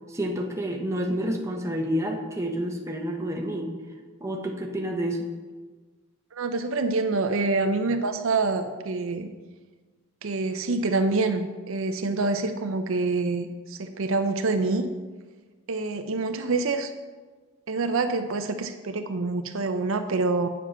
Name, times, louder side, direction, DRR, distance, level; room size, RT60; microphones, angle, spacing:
voice 1, 0.1-3.7 4.2-5.3, equal, 15° right, 1 dB, 0.9 m, -29 dB
voice 2, 6.3-9.3 10.2-14.9 15.7-16.9 17.7-20.5, right 3 dB, 65° right, 8 dB, 0.6 m, -26 dB
8.1 x 7.3 x 5.6 m, 1.4 s
head